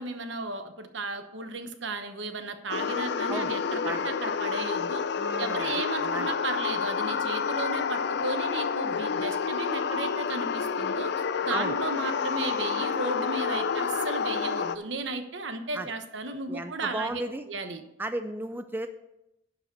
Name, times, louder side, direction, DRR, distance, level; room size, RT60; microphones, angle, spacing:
voice 1, 0.0-5.0 5.4-17.2 17.5-17.8, right 3 dB, 65° right, 7 dB, 1.0 m, -34 dB
sound 1, 2.7-14.8, left 6 dB, 60° left, 0.4 m, -29 dB
voice 2, 5.1-5.7 6.0-6.3 11.5-11.8 15.7-15.9 16.5-17.5 18.0-18.9, right 2 dB, 10° right, 8 dB, 0.4 m, -34 dB
11.0 x 5.0 x 6.7 m, 0.88 s
head